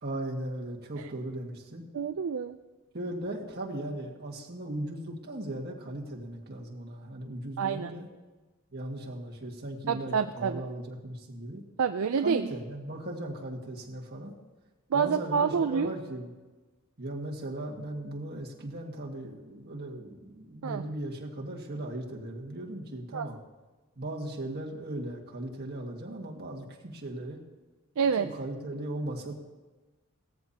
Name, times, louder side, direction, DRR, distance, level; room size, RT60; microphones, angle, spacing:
voice 1, 0.0-1.9 2.9-8.1 8.7-11.6 12.2-14.3 14.9-16.3 17.0-23.4 24.0-27.4 28.2-29.3, right 1 dB, 45° right, -1 dB, 1.9 m, -37 dB
voice 2, 1.9-2.6 7.6-7.9 9.9-10.6 11.8-12.5 14.9-15.9 20.6-20.8 23.1-23.3 28.0-28.3, right 6 dB, 65° right, 8 dB, 0.4 m, -27 dB
17.5 x 14.0 x 2.9 m, 1.2 s
head